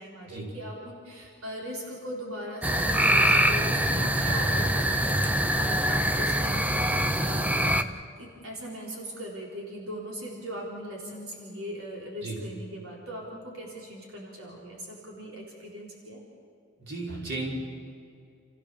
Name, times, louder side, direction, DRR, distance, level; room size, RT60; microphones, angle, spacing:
voice 1, 0.0-7.8 8.2-16.2, equal, 90° right, -2 dB, 4.0 m, -40 dB
sound 1, 2.6-7.8, right 1 dB, 5° right, 0.8 m, -24 dB
voice 2, 16.8-17.5, right 3 dB, 55° right, -3 dB, 5.3 m, -34 dB
29.0 x 15.0 x 6.9 m, 2.5 s
head